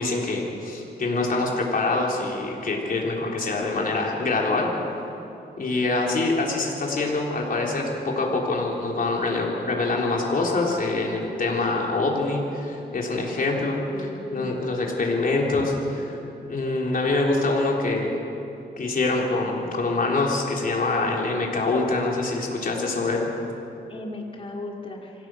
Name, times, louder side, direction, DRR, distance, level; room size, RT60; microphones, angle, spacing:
voice 1, 0.0-5.0 5.6-15.7 16.5-18.1 18.8-23.3, left 3 dB, 55° left, -1 dB, 3.8 m, -25 dB
voice 2, 13.9-14.5 15.5-15.6 19.7-19.8 23.9-25.1, left 2 dB, 30° left, 0 dB, 2.5 m, -36 dB
25.5 x 17.0 x 6.3 m, 2.8 s
cardioid pair, 90°, 17 cm